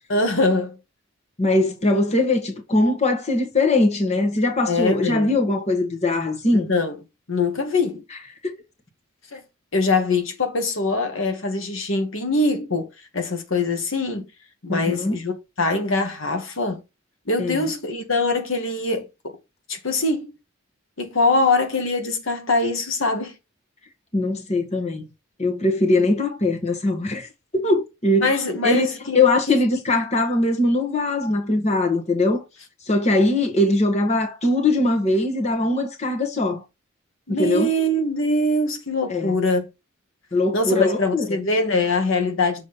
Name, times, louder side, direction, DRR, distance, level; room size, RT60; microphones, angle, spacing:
voice 1, 0.1-0.8 4.7-5.3 6.5-7.0 7.3-8.0 9.3-9.4 9.7-12.9 13.1-14.3 14.6-16.8 17.3-19.4 19.7-20.3 21.0-23.3 28.2-29.2 29.5-29.6 37.3-39.7 40.5-42.7, left 2 dB, 70° left, 1.2 m, -23 dB
voice 2, 1.4-6.7 8.4-8.5 14.7-15.2 17.4-17.6 24.1-25.1 25.4-28.3 28.6-28.9 29.1-32.4 32.9-36.6 37.3-37.7 39.1-39.3 40.3-41.3, left 2 dB, 35° left, 1.3 m, -21 dB
6.8 x 3.1 x 5.4 m
head